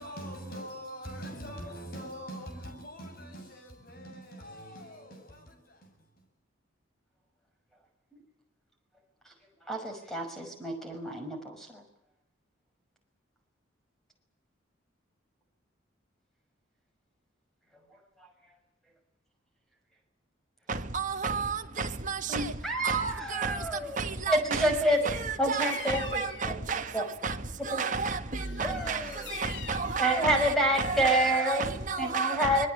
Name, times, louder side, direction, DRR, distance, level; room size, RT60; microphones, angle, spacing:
voice 1, 0.0-6.0, equal, 45° left, 7.7 m, -43 dB
voice 2, 9.7-11.8 22.3-24.0 24.3-25.0 25.4-26.5 26.9-27.0 27.7-27.8 28.6-29.3 30.0-31.7 32.0-32.7, equal, ahead, 5.9 m, -28 dB
voice 3, 20.7-32.6, right 4 dB, 40° right, 1.5 m, -32 dB
Bird vocalization bird call bird song, 25.5-26.5 28.4-30.0, left 5 dB, 60° left, 2.7 m, -41 dB
26.0 x 20.5 x 8.6 m
head